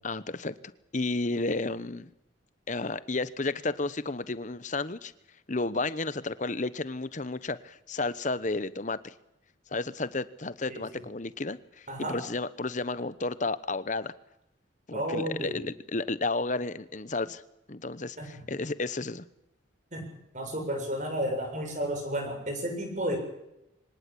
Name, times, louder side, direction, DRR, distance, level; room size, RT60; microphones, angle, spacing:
voice 1, 0.0-0.5 0.9-2.1 2.7-5.1 5.5-9.1 9.7-14.1 14.9-17.4 17.7-19.2, left 3 dB, 40° left, 15 dB, 1.0 m, -32 dB
voice 2, 10.7-11.0 11.9-12.2 14.9-15.6 18.2-18.3 19.9-23.2, equal, 40° right, 4 dB, 7.3 m, -32 dB
24.0 x 19.0 x 8.6 m, 0.85 s
head